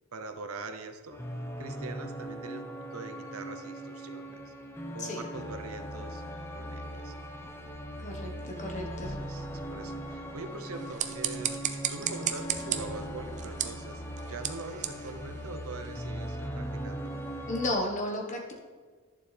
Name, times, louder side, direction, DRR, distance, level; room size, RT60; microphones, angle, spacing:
voice 1, 0.1-1.2 1.6-4.5 4.9-7.1 8.6-17.2, right 3 dB, 80° right, 8 dB, 0.8 m, -43 dB
sound 1, 1.1-17.7, equal, 10° left, 0.8 m, -39 dB
voice 2, 8.0-9.2 17.5-18.5, left 1 dB, 35° left, 1 dB, 1.4 m, -33 dB
sound 2, 10.7-16.0, right 9 dB, 35° right, 0.5 m, -36 dB
11.0 x 7.3 x 3.4 m, 1.4 s
head